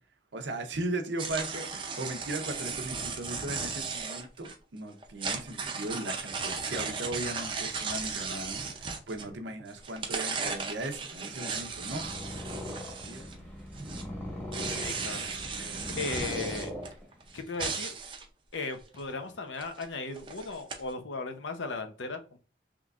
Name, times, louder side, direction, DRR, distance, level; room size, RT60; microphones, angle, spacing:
voice 1, 0.3-12.1 12.5-13.2 15.6-16.0, right 1 dB, 80° right, 0.7 m, -38 dB
sound 1, 1.2-4.5 5.0-9.5 9.8-13.4 13.7-18.2 18.7-19.0 19.6-19.8 20.1-20.8, right 5 dB, 25° right, 0.5 m, -36 dB
Purr, 11.7-17.4, left 1 dB, 10° left, 1.0 m, -40 dB
voice 2, 14.6-15.6 15.9-16.7 17.3-17.9 18.5-22.4, left 3 dB, 85° left, 0.7 m, -37 dB
3.7 x 3.1 x 2.4 m
head